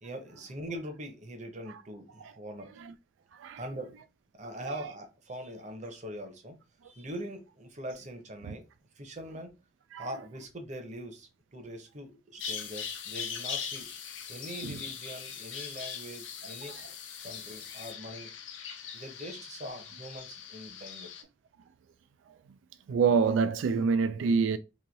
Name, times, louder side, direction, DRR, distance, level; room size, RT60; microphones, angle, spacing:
voice 1, 0.0-2.7 3.6-3.9 4.4-6.6 6.8-8.7 8.9-9.5 10.0-13.9 14.3-16.8 17.2-18.3 18.9-21.1, equal, 40° right, 0.8 m, -42 dB
voice 2, 3.3-3.6 4.6-4.9 8.4-8.6 9.9-10.1 14.6-14.8 22.3-22.4 22.9-24.6, right 5 dB, 90° right, 0.3 m, -27 dB
Bird vocalization bird call bird song, 12.4-21.2, left 7 dB, 90° left, 0.7 m, -41 dB
sound 1, 12.4-17.9, left 8 dB, 45° left, 0.7 m, -48 dB
3.1 x 2.7 x 3.9 m
head